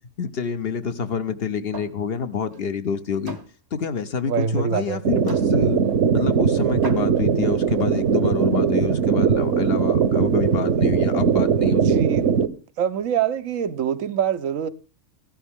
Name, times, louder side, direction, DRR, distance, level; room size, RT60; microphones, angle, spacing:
voice 1, 0.2-3.4 3.7-5.8 6.1-12.0, left 6 dB, 55° left, 1.0 m, -27 dB
sound 1, 1.7-2.0 2.4-2.6 3.3-3.5 4.4-4.5 5.3-5.5 6.3-6.4 6.8-7.3, right 4 dB, 20° right, 0.7 m, -36 dB
voice 2, 4.3-5.0 11.7-12.3 12.8-14.7, right 8 dB, 90° right, 1.2 m, -24 dB
sound 2, 5.0-12.5, right 6 dB, 65° right, 1.1 m, -20 dB
14.5 x 12.0 x 3.6 m
omnidirectional pair, 1.3 m